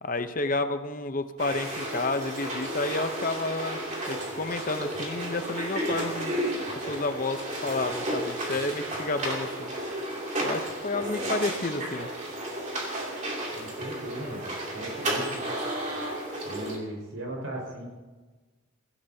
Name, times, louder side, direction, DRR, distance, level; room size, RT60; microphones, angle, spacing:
voice 1, 0.0-3.8 4.1-6.4 6.9-9.7 10.4-12.1, left 3 dB, 40° left, 8 dB, 0.8 m, -30 dB
sound 1, 1.4-16.8, right 1 dB, 35° right, 2.7 m, -33 dB
voice 2, 13.5-14.5 14.7-15.4 16.4-17.9, right 1 dB, 75° right, -1 dB, 5.2 m, -37 dB
23.5 x 15.5 x 2.8 m, 1.3 s
head